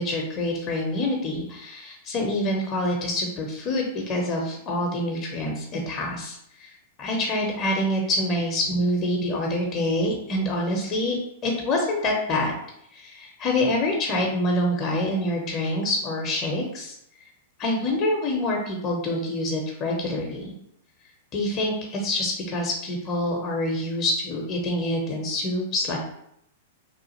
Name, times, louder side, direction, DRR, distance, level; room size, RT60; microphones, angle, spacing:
voice 1, 0.0-6.7 7.0-11.2 11.4-12.5 12.9-16.9 17.6-20.5 21.3-26.0, left 1 dB, 30° left, 0 dB, 0.6 m, -26 dB
3.1 x 2.4 x 2.8 m, 0.73 s
figure-of-eight pair, 100°, 0 cm